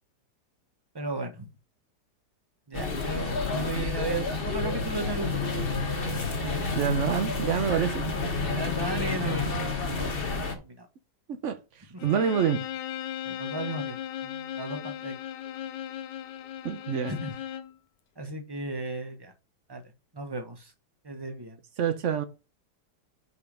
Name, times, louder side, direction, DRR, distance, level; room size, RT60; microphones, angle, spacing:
voice 1, 0.9-1.5 2.7-5.4 6.1-6.7 8.5-9.6 9.8-10.1 10.6-10.9 11.9-12.1 13.2-14.0 14.2-15.1 17.1-17.3 18.2-19.3 19.7-19.8 20.1-20.7 21.0-21.6, right 2 dB, 20° right, 0.6 m, -35 dB
sound 1, 2.7-10.5, left 3 dB, 35° left, 1.2 m, -30 dB
voice 2, 6.7-8.0 11.4-11.6 12.0-12.6 16.6-17.1 21.8-22.2, right 8 dB, 55° right, 0.9 m, -26 dB
Bowed string instrument, 12.0-17.8, left 10 dB, 85° left, 1.3 m, -37 dB
5.5 x 5.0 x 5.1 m
omnidirectional pair, 1.9 m